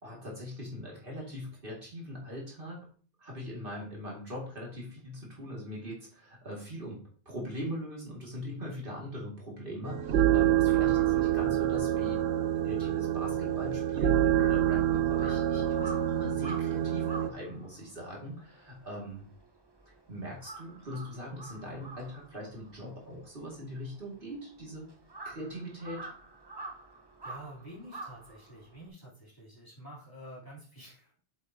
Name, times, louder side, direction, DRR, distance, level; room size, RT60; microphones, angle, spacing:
voice 1, 0.0-2.8 3.2-12.2 12.6-19.2 19.9-24.9 25.2-26.1, equal, 60° right, -3 dB, 2.5 m, -41 dB
sound 1, 9.8-17.3, right 12 dB, 90° right, 0.8 m, -27 dB
Crow, 13.4-20.0 20.3-28.9, right 3 dB, 25° right, 1.0 m, -47 dB
voice 2, 27.2-31.2, equal, 20° left, -6 dB, 3.3 m, -48 dB
8.0 x 7.5 x 2.8 m, 0.42 s
omnidirectional pair, 1.0 m